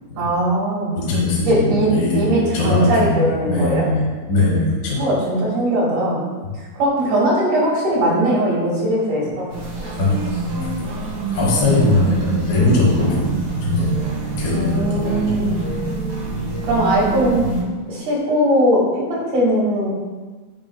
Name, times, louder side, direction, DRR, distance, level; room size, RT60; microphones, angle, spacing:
voice 1, 0.2-1.0 1.5-3.8 5.0-6.2 6.7-9.5 14.5-15.5 16.6-17.4 17.9-19.9, right 1 dB, 80° right, -5 dB, 3.4 m, -19 dB
voice 2, 0.9-5.0 10.0-10.1 10.6-10.7 11.0-13.2 13.6-13.9 14.4-15.3, left 2 dB, 45° left, -5 dB, 1.5 m, -20 dB
sound 1, 9.5-17.6, right 2 dB, 45° right, 1.8 m, -25 dB
7.6 x 6.1 x 2.3 m, 1.3 s
omnidirectional pair, 3.5 m